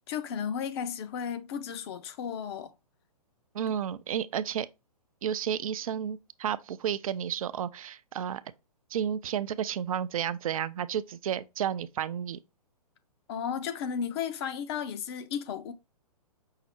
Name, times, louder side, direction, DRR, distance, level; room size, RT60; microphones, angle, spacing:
voice 1, 0.1-2.7 13.3-15.7, left 7 dB, 40° left, 0.6 m, -34 dB
voice 2, 3.5-4.7 5.2-8.4 8.9-12.4, right 9 dB, 60° right, 0.4 m, -32 dB
5.6 x 2.0 x 4.3 m
hypercardioid pair, 125°, 20 cm